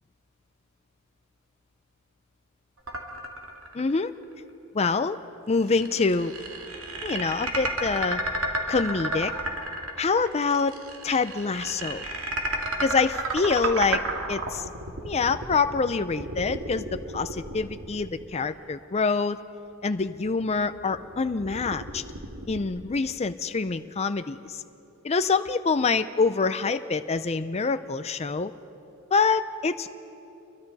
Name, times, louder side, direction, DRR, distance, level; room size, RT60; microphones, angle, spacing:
sound 1, 2.9-4.0 4.3-4.4 5.6-18.6 19.9-22.7, right 2 dB, 90° right, 2.4 m, -33 dB
voice 1, 3.7-4.1 4.7-5.2 5.5-6.4 7.0-8.2 8.7-9.3 10.0-10.8 11.0-12.0 12.8-14.0 14.3-14.7 15.0-19.4 19.8-22.0 22.5-24.6 25.0-28.5 29.1-29.9, left 4 dB, 30° left, 10 dB, 0.5 m, -26 dB
28.5 x 23.0 x 4.1 m, 2.8 s
head